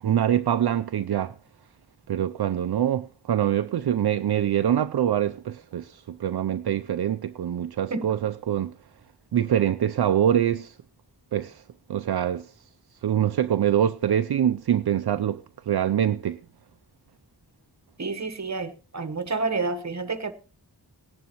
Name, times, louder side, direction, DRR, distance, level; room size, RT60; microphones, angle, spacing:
voice 1, 0.0-1.3 2.1-8.7 9.3-10.8 11.3-11.6 11.9-12.5 13.0-16.4, right 10 dB, 70° right, 0.5 m, -24 dB
voice 2, 18.0-20.3, right 3 dB, 45° right, 1.1 m, -29 dB
18.0 x 11.0 x 3.0 m
wide cardioid pair, 75°, 40 cm